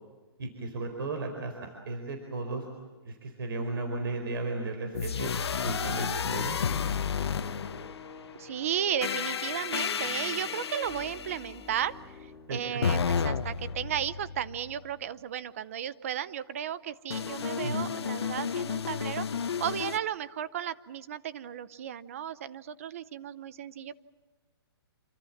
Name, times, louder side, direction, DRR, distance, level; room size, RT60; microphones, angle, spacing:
voice 1, 0.4-2.6 3.0-5.3 5.6-6.6 12.5-12.6 17.6-17.8, right 3 dB, 60° right, 5 dB, 4.4 m, -35 dB
sound 1, 4.9-8.2 9.0-11.5 12.8-14.9 17.1-20.0, left 6 dB, 85° left, 1.4 m, -32 dB
sound 2, 6.3-13.2, left 5 dB, 15° left, 3.6 m, -47 dB
voice 2, 8.4-24.0, right 10 dB, 35° right, 17 dB, 0.7 m, -34 dB
28.0 x 25.5 x 7.3 m, 1.3 s
hypercardioid pair, 175°, 13 cm